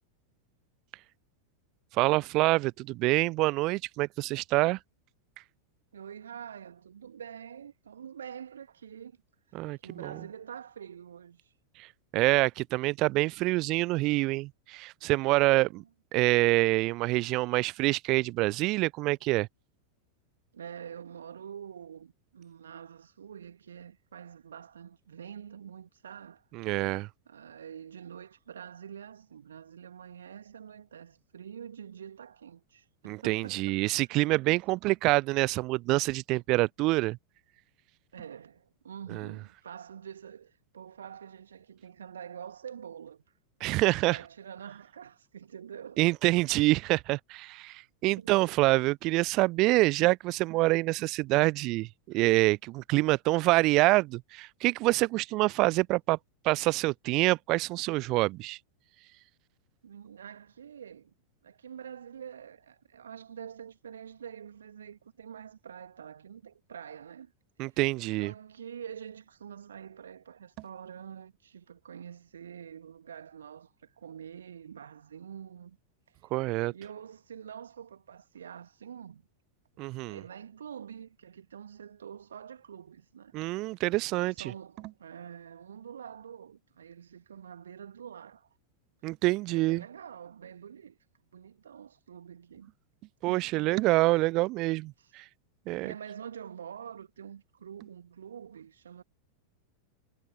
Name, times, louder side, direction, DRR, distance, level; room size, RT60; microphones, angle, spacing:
voice 1, 2.0-4.8 9.5-10.1 12.1-15.8 16.1-19.5 26.5-27.1 33.1-37.2 39.1-39.3 43.6-44.2 46.0-56.2 56.4-58.6 67.6-68.3 76.3-76.7 79.8-80.2 83.3-84.3 89.0-89.8 93.2-95.2 95.7-95.9, right 21 dB, 40° right, 0.4 m, -26 dB
voice 2, 5.9-9.2 9.8-11.5 15.7-15.9 20.5-26.4 27.3-34.3 38.1-43.2 44.0-46.0 48.2-48.5 59.8-61.1 61.4-67.3 68.2-75.8 76.7-79.2 80.1-83.3 84.1-88.5 89.5-91.0 91.3-92.7 93.3-93.8 95.0-95.1 95.8-99.0, right 8 dB, 65° right, 2.4 m, -46 dB
figure-of-eight pair, 90°, 0 cm